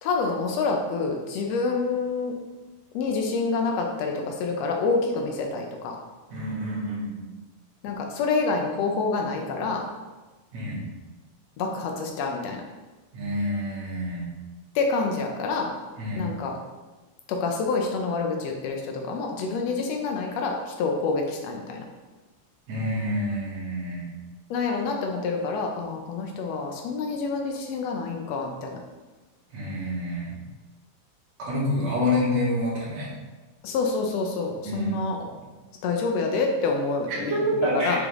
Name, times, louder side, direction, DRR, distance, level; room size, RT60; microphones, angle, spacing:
voice 1, 0.0-2.3 2.9-6.0 7.8-9.8 11.6-12.6 14.7-15.7 16.2-16.5 17.3-21.8 24.5-28.8 31.8-32.1 33.6-35.2 35.8-38.0, left 4 dB, 80° left, 2 dB, 1.4 m, -27 dB
voice 2, 6.3-7.3 10.5-10.8 13.1-14.3 16.0-16.3 22.7-24.1 29.5-30.4 31.4-33.1 34.6-35.0 37.2-38.1, left 1 dB, 55° right, -7 dB, 2.9 m, -27 dB
6.7 x 5.0 x 3.6 m, 1.2 s
omnidirectional pair, 3.9 m